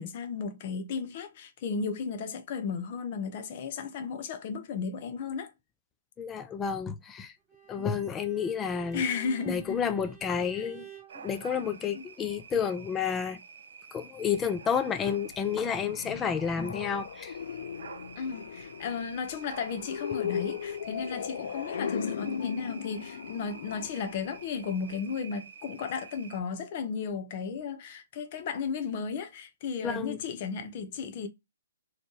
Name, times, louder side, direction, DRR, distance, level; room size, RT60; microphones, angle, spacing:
voice 1, 0.0-5.5 7.8-8.0 8.9-9.8 10.5-10.6 11.9-12.0 18.2-31.3, left 5 dB, 40° left, 0.9 m, -34 dB
voice 2, 6.2-7.3 7.7-9.1 9.5-10.9 11.1-13.4 13.9-17.3 29.8-30.2, left 7 dB, 15° left, 0.6 m, -30 dB
Bowed string instrument, 7.5-11.2, right 10 dB, 5° right, 2.4 m, -50 dB
sound 1, 11.1-26.4, right 6 dB, 65° right, 0.7 m, -49 dB
sound 2, 15.2-25.0, left 7 dB, 60° left, 0.4 m, -37 dB
4.3 x 3.2 x 3.1 m
hypercardioid pair, 135°, 0 cm